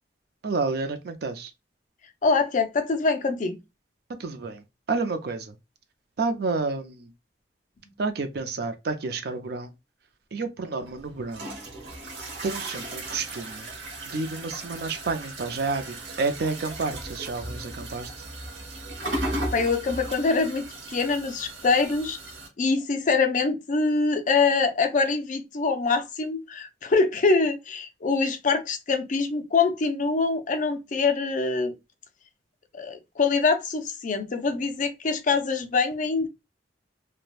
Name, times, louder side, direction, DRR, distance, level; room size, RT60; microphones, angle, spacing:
voice 1, 0.4-1.5 4.2-4.6 4.9-5.5 6.2-7.1 8.0-9.7 10.3-11.5 12.4-13.7 14.1-18.1, right 3 dB, 60° right, 0.5 m, -30 dB
voice 2, 2.2-3.6 19.5-22.2 22.6-31.7 32.7-36.3, left 4 dB, 45° left, 0.5 m, -24 dB
sound 1, 10.8-22.5, right 1 dB, 85° right, 1.0 m, -36 dB
3.2 x 2.1 x 2.4 m
head